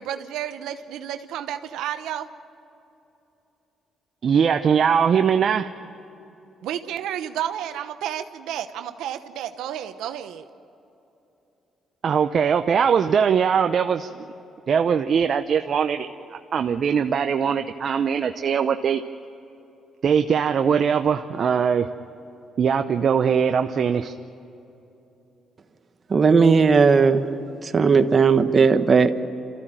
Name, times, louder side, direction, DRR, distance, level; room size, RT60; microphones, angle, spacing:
voice 1, 0.0-2.3 6.6-10.4, right 10 dB, 90° right, 8 dB, 0.9 m, -31 dB
voice 2, 4.2-5.7 12.0-14.1 14.7-19.0 20.0-21.9 22.6-24.1, right 7 dB, 55° right, 7 dB, 0.7 m, -21 dB
voice 3, 26.1-27.3 27.6-29.2, right 5 dB, 40° right, 8 dB, 1.2 m, -17 dB
29.0 x 14.5 x 9.0 m, 3.0 s
cardioid pair, 90°, 0 cm